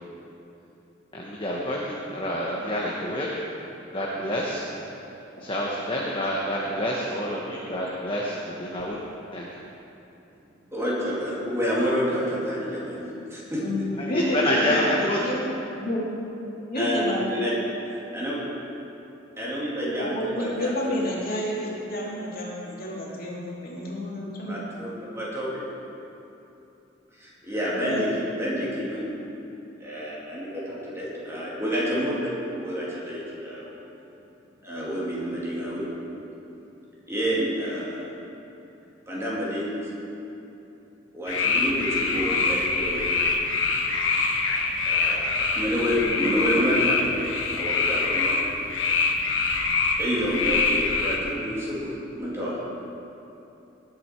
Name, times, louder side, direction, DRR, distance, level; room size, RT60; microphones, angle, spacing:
voice 1, 1.1-3.3 3.9-4.7 5.4-9.0 9.3-9.5 14.0-15.2, equal, 25° left, -4 dB, 1.1 m, -28 dB
voice 2, 10.7-13.6 16.8-17.0 17.3-17.5 18.1-18.4 19.4-20.9 24.5-25.6 27.2-29.0 29.8-33.8 34.6-35.9 37.1-38.0 39.1-39.8 41.1-43.2 44.8-47.2 47.5-48.5 50.0-52.7, equal, 15° right, -7 dB, 2.7 m, -29 dB
voice 3, 13.6-15.4 15.7-16.0 16.7-17.4 19.8-24.6 27.7-28.0, left 1 dB, 50° left, -4 dB, 2.6 m, -29 dB
sound 1, 41.3-51.2, left 4 dB, 80° left, 1.2 m, -25 dB
19.5 x 7.7 x 4.5 m, 2.9 s
head